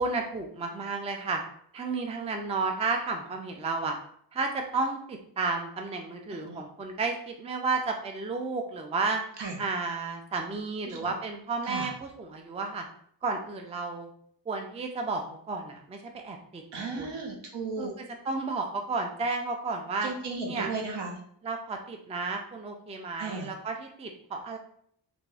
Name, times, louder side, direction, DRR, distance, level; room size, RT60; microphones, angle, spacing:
voice 1, 0.0-1.4 1.7-4.0 4.3-9.2 9.6-12.9 13.2-14.1 14.5-17.2 17.8-20.1 20.5-20.7 21.4-24.6, right 3 dB, 15° right, 4 dB, 0.4 m, -32 dB
voice 2, 16.7-17.9 20.0-21.1 23.2-23.5, right 4 dB, 70° right, 1 dB, 1.0 m, -35 dB
3.4 x 2.6 x 3.3 m, 0.64 s
cardioid pair, 105°, 43 cm